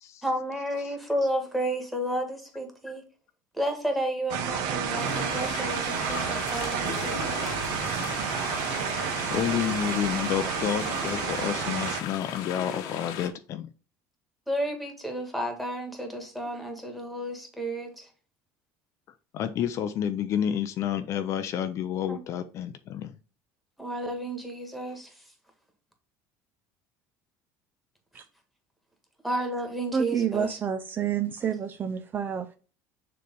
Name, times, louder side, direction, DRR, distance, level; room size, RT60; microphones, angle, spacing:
voice 1, 0.2-3.0 3.5-7.5 14.5-18.1 22.1-22.2 23.8-25.1 29.2-30.5, right 1 dB, ahead, 1.6 m, -32 dB
sound 1, 4.3-12.0, right 7 dB, 70° right, 1.3 m, -30 dB
sound 2, 4.9-13.3, left 8 dB, 70° left, 1.2 m, -37 dB
voice 2, 9.3-13.7 19.3-23.2, left 9 dB, 45° left, 0.5 m, -30 dB
voice 3, 29.9-32.5, right 7 dB, 30° right, 0.5 m, -29 dB
6.8 x 3.3 x 5.2 m
cardioid pair, 150°, 7 cm